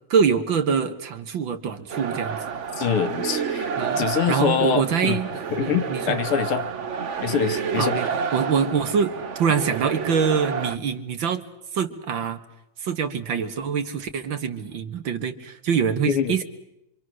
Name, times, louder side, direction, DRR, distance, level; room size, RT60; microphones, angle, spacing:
voice 1, 0.1-2.4 3.8-5.3 5.6-6.2 7.8-9.1 9.4-11.4 11.7-12.4 12.8-16.4, right 6 dB, 60° right, 8 dB, 2.2 m, -24 dB
sound 1, 1.9-10.8, right 6 dB, 45° right, 1.0 m, -29 dB
voice 2, 2.8-3.7 4.0-5.2 5.5-6.7 7.2-7.9 16.1-16.4, left 8 dB, 85° left, 10 dB, 2.2 m, -24 dB
26.0 x 26.0 x 6.3 m, 0.84 s
omnidirectional pair, 2.4 m